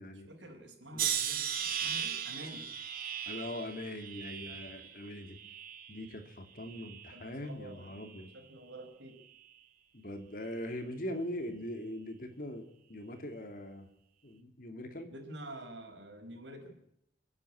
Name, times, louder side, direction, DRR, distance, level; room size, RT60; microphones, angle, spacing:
voice 1, 0.3-2.7 7.1-9.2 15.1-16.8, right 1 dB, 80° right, 4 dB, 5.0 m, -48 dB
sound 1, 1.0-6.1 6.6-7.3 8.0-8.3, right 8 dB, 55° right, 2.6 m, -37 dB
voice 2, 3.3-5.4 5.9-8.3 9.9-13.9 14.2-15.1, left 1 dB, 50° left, 6 dB, 2.8 m, -41 dB
28.5 x 9.6 x 9.9 m, 0.75 s
head